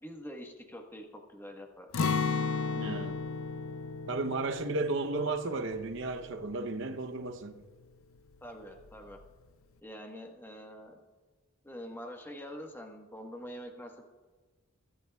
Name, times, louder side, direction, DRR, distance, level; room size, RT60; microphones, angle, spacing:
voice 1, 0.0-2.1 8.4-9.2 9.8-11.0 11.6-14.1, equal, 10° left, 1.2 m, -45 dB
Acoustic guitar, 1.9-7.8 8.1-8.3 8.8-9.3, left 5 dB, 90° left, 0.5 m, -35 dB
voice 2, 2.7-3.2 4.1-7.6, right 3 dB, 65° right, 0.8 m, -34 dB
22.5 x 11.0 x 2.3 m
head